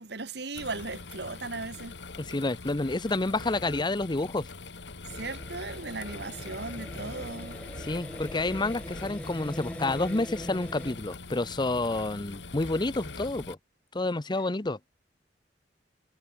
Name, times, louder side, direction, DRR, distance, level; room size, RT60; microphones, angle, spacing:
voice 1, 0.0-2.0 5.1-7.6, right 3 dB, 65° right, 2.2 m, -37 dB
sound 1, 0.5-13.5, left 3 dB, 80° left, 1.7 m, -43 dB
voice 2, 2.3-4.5 7.8-13.6 13.9-14.8, left 2 dB, 25° left, 0.8 m, -29 dB
sound 2, 5.1-11.0, equal, 5° left, 1.3 m, -42 dB
head